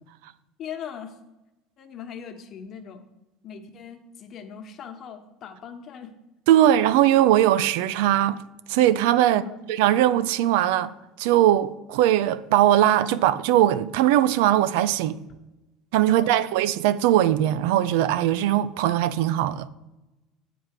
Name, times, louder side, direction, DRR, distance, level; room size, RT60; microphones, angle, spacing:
voice 1, 0.6-1.2 1.8-3.0 3.4-6.1 9.2-9.6 15.3-15.4 16.0-16.5, left 8 dB, 50° left, 1.1 m, -39 dB
voice 2, 6.5-8.4 8.7-9.4 9.7-10.9 11.2-15.2 15.9-19.7, right 12 dB, 75° right, 0.4 m, -20 dB
7.5 x 4.7 x 6.5 m
supercardioid pair, 90°, 0 cm